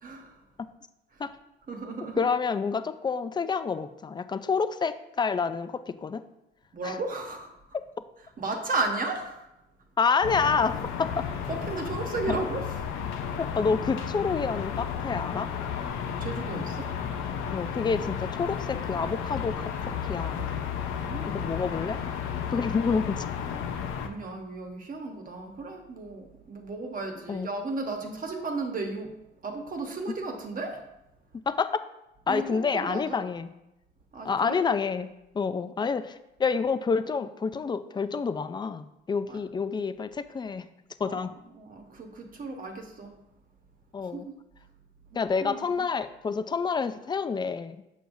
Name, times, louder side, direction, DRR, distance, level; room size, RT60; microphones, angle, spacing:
voice 1, 0.0-0.4 1.1-1.2 1.7-2.3 6.7-7.5 8.4-9.5 11.5-12.7 16.2-16.9 20.9-21.4 24.0-29.1 29.4-30.8 32.3-33.3 34.1-34.6 39.3-39.4 41.0-41.3 41.5-43.2 44.0-44.3 45.1-45.9, right 3 dB, 45° right, 3 dB, 1.1 m, -34 dB
voice 2, 2.2-6.2 6.8-7.0 10.0-11.3 12.3-12.4 13.4-15.5 17.5-20.4 21.3-22.0 22.5-23.3 27.3-27.5 31.3-31.8 32.3-33.5 34.2-35.1 35.3-40.7 41.0-41.3 43.9-44.3 45.1-47.8, left 5 dB, 20° left, 12 dB, 0.4 m, -28 dB
sound 1, 10.2-24.1, left 7 dB, 90° left, 0.7 m, -33 dB
6.7 x 6.2 x 2.6 m, 0.89 s
cardioid pair, 90°, 20 cm